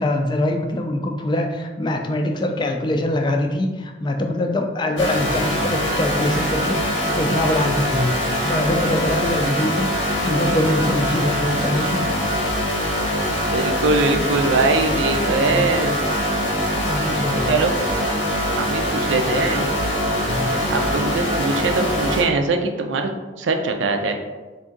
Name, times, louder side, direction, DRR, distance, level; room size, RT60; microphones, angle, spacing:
voice 1, 0.0-12.1 14.1-14.2 15.3-15.7 16.8-17.5 20.2-20.6, left 1 dB, 25° left, 3 dB, 0.3 m, -23 dB
sound 1, 5.0-22.2, equal, 80° left, 1.0 m, -23 dB
voice 2, 13.5-16.0 17.5-17.8 18.6-19.7 20.7-23.1 23.4-24.2, right 3 dB, 85° right, 5 dB, 0.4 m, -22 dB
3.6 x 2.7 x 3.7 m, 1.2 s
head